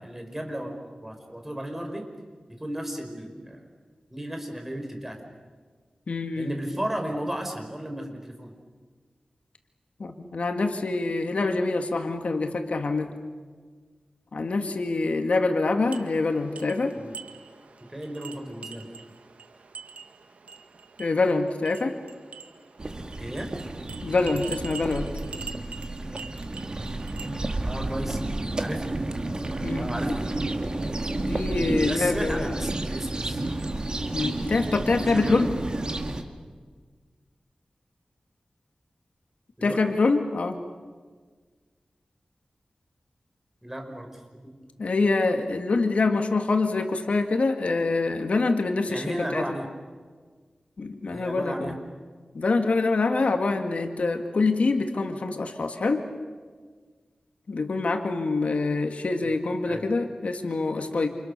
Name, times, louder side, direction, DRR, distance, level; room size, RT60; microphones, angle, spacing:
voice 1, 0.0-2.0 2.6-3.6 4.1-5.2 6.3-8.5 16.9-17.1 17.9-18.9 23.2-23.5 27.6-28.2 28.6-28.8 29.8-30.6 31.8-33.4 35.0-35.4 39.6-39.9 43.6-44.5 48.9-49.7 51.1-51.8 59.2-59.3 59.6-59.9, equal, 15° right, 3 dB, 5.0 m, -34 dB
voice 2, 6.1-6.5 10.0-13.1 14.3-17.0 21.0-22.0 24.0-25.2 29.6-30.2 31.1-32.6 34.1-35.5 39.6-40.6 44.8-49.5 50.8-51.8 52.3-56.0 57.5-61.1, left 3 dB, 70° left, 5 dB, 2.0 m, -25 dB
sound 1, 15.9-27.3, right 5 dB, 85° right, 1.7 m, -44 dB
sound 2, 22.8-36.2, right 2 dB, 40° right, 2.1 m, -31 dB
29.0 x 28.5 x 6.7 m, 1.5 s
wide cardioid pair, 90°, 2 cm